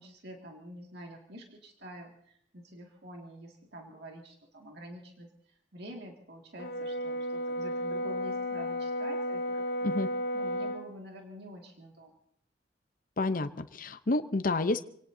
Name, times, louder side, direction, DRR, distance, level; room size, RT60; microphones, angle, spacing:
voice 1, 0.0-9.7 10.3-12.1, equal, 65° right, 1 dB, 2.2 m, -47 dB
Brass instrument, 6.6-10.9, left 1 dB, 70° left, 1.1 m, -33 dB
voice 2, 13.2-14.8, left 2 dB, 50° left, 10 dB, 0.8 m, -29 dB
28.0 x 18.0 x 2.7 m, 0.67 s
head